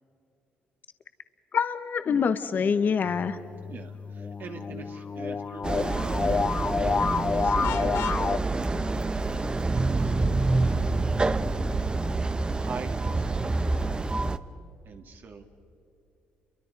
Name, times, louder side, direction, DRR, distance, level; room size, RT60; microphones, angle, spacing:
voice 1, 1.5-3.4, left 6 dB, 50° left, 10 dB, 1.2 m, -25 dB
sound 1, 3.1-8.4, left 5 dB, 35° left, 0.5 m, -29 dB
voice 2, 3.7-6.6 7.3-7.9 9.1-11.1 12.6-14.1 14.8-15.4, right 5 dB, 60° right, 3 dB, 2.8 m, -43 dB
sound 2, 5.6-14.4, right 3 dB, 25° right, 0.9 m, -27 dB
Vehicle horn car horn honking, 7.6-8.2, left 12 dB, 90° left, 0.9 m, -37 dB
30.0 x 23.5 x 5.3 m, 2.7 s
cardioid pair, 85°, 4 cm